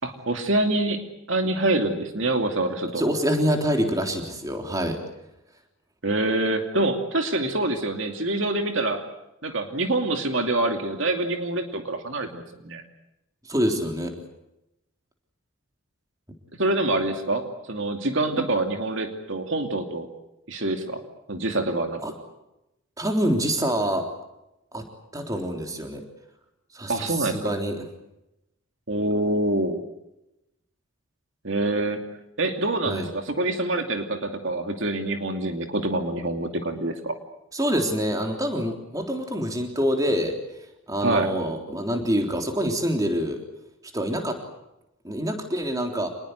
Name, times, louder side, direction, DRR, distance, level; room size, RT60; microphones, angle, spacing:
voice 1, 0.0-3.1 6.0-9.0 9.4-12.8 16.6-20.1 20.5-21.0 21.3-22.0 26.9-27.4 28.9-29.8 31.4-32.0 32.4-37.2 41.0-41.3, right 2 dB, 60° right, 5 dB, 2.7 m, -26 dB
voice 2, 3.0-5.0 13.4-14.1 22.0-22.1 23.0-24.1 24.7-24.9 25.1-26.0 26.7-27.9 32.9-33.1 37.5-40.4 40.9-43.4 43.9-44.4 45.0-46.1, equal, 15° right, 3 dB, 3.6 m, -26 dB
27.0 x 20.5 x 8.1 m, 0.90 s
head